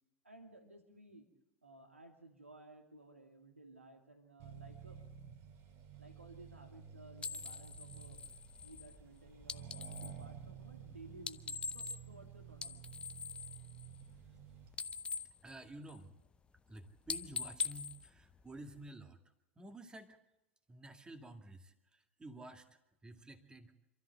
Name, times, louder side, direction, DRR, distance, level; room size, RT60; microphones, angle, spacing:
voice 1, 0.2-1.3 1.6-5.0 5.9-8.3 8.6-12.8, right 2 dB, 85° right, 3 dB, 2.5 m, -57 dB
Accelerating revving vroom, 4.4-14.8, right 7 dB, 40° right, 2.5 m, -52 dB
sound 1, 7.2-10.2 11.1-12.2 12.5-14.4 14.6-16.2 16.6-16.8 17.1-18.9, left 5 dB, 15° left, 0.8 m, -43 dB
voice 2, 15.4-16.1 16.7-19.2 19.6-20.2 20.7-23.7, right 1 dB, 10° right, 6 dB, 2.1 m, -52 dB
26.5 x 13.5 x 8.0 m, 0.91 s
figure-of-eight pair, 90°, 7 cm